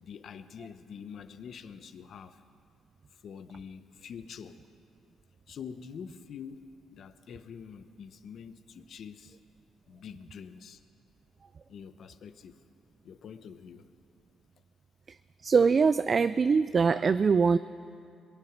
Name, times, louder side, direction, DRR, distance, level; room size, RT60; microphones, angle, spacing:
voice 1, 0.0-2.4 3.1-4.6 5.5-9.4 9.9-10.8 11.7-12.6 13.0-13.9, left 7 dB, 60° left, 11 dB, 0.8 m, -45 dB
voice 2, 15.1-17.6, right 5 dB, 40° right, 14 dB, 0.3 m, -23 dB
22.5 x 9.5 x 5.9 m, 2.4 s
cardioid pair, 90°, 0 cm